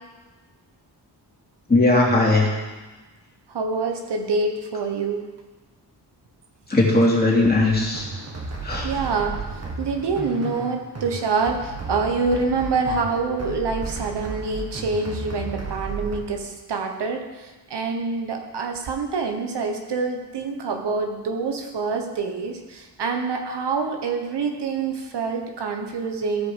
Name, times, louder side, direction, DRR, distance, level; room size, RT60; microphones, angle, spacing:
voice 1, 1.7-2.5 6.7-8.1 8.6-8.9, left 2 dB, 20° left, -3 dB, 2.9 m, -18 dB
voice 2, 3.5-5.2 8.8-9.3 9.8-26.5, right 4 dB, 75° right, 4 dB, 1.2 m, -26 dB
sound 1, 7.4-16.2, right 3 dB, 40° right, 1.8 m, -34 dB
14.5 x 5.1 x 5.0 m, 1.2 s
cardioid pair, 75°, 41 cm